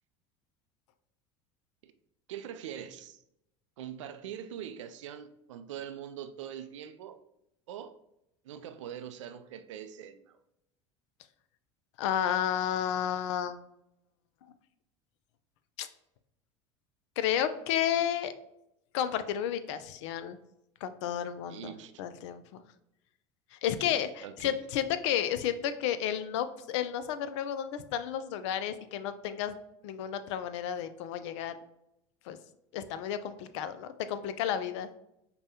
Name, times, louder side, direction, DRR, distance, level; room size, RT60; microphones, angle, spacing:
voice 1, 2.3-3.2 3.8-7.2 7.7-8.0 8.4-10.4 21.5-21.9 23.8-24.6, right 9 dB, 80° right, 0.4 m, -43 dB
voice 2, 12.0-13.6 15.8-15.9 17.2-18.3 18.9-20.4 20.8-22.4 23.5-29.6 29.8-31.5 32.3-32.4 32.7-35.0, left 10 dB, 70° left, 0.4 m, -32 dB
5.2 x 2.2 x 2.7 m
hypercardioid pair, 80°, 15 cm